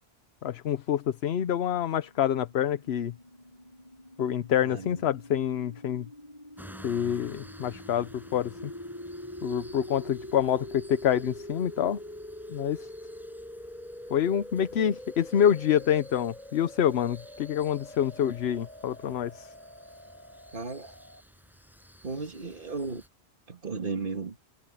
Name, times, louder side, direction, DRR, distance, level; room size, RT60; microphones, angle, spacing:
voice 1, 0.4-3.1 4.2-6.1 6.8-8.7 9.4-12.0 12.5-12.9 14.1-19.5, left 9 dB, 70° left, 1.0 m, -27 dB
sound 1, 2.0-21.2, left 1 dB, 40° left, 7.6 m, -45 dB
voice 2, 4.6-5.0 20.5-21.0 22.0-23.0 23.5-24.4, right 4 dB, 50° right, 2.1 m, -35 dB
sound 2, 6.6-23.1, equal, ahead, 6.0 m, -53 dB
omnidirectional pair, 1.1 m